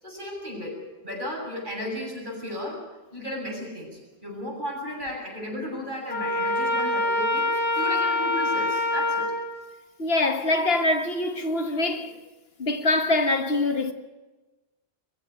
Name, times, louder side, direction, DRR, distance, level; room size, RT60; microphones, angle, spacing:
voice 1, 0.0-2.8 3.1-9.3, left 1 dB, 45° right, 7.4 m, -34 dB
Trumpet, 6.1-9.5, left 2 dB, 30° right, 4.9 m, -25 dB
voice 2, 10.0-12.2 12.6-13.9, left 2 dB, 65° left, 1.6 m, -24 dB
23.0 x 15.0 x 9.4 m
omnidirectional pair, 1.1 m